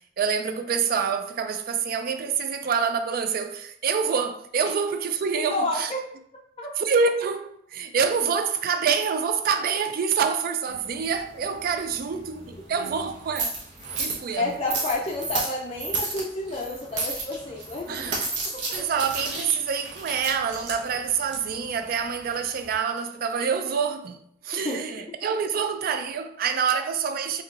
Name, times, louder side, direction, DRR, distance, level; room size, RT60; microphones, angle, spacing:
voice 1, 0.0-5.9 6.8-13.5 14.0-14.5 17.9-18.2 18.7-24.2 24.4-27.4, right 6 dB, 55° right, 0.4 m, -26 dB
voice 2, 5.5-6.0 6.6-6.7 14.4-18.1 18.5-18.6 24.6-24.9, left 2 dB, 30° left, 0.4 m, -30 dB
sound 1, 10.7-22.7, right 3 dB, 75° right, 1.0 m, -34 dB
4.5 x 2.7 x 2.4 m
head